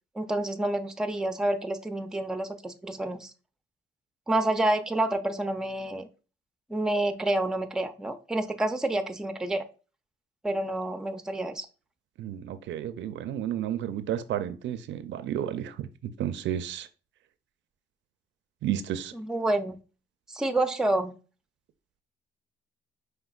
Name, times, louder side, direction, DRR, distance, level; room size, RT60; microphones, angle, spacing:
voice 1, 0.2-3.3 4.3-6.1 6.7-9.6 10.4-11.7 19.1-19.8 20.3-21.2, right 1 dB, 5° right, 7 dB, 0.4 m, -28 dB
voice 2, 12.2-15.9 16.2-16.9 18.6-19.1, right 10 dB, 70° right, 11 dB, 0.4 m, -32 dB
5.1 x 3.3 x 2.3 m, 0.35 s
cardioid pair, 90°, 20 cm